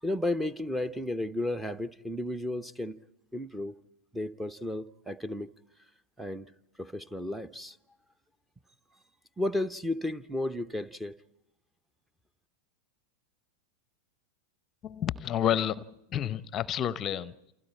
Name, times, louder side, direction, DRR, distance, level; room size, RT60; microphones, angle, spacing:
voice 1, 0.0-3.0 3.3-3.7 4.1-5.5 6.2-6.5 6.8-7.8 9.4-11.2, left 1 dB, 5° right, 0.8 m, -33 dB
voice 2, 14.8-15.8 16.1-17.5, left 10 dB, 30° left, 0.7 m, -30 dB
29.0 x 28.5 x 4.4 m
figure-of-eight pair, 90°, 0 cm